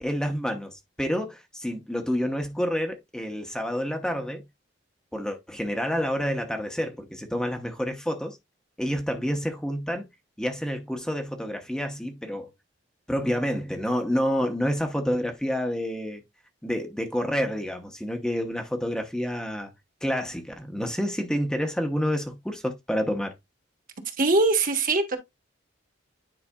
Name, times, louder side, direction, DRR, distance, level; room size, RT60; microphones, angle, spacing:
voice 1, 0.0-4.4 5.1-8.4 8.8-10.1 10.4-12.5 13.1-16.2 16.6-19.7 20.0-23.3, equal, 5° left, 0.8 m, -28 dB
voice 2, 24.2-25.2, right 2 dB, 50° right, 1.2 m, -22 dB
9.8 x 4.8 x 2.3 m
head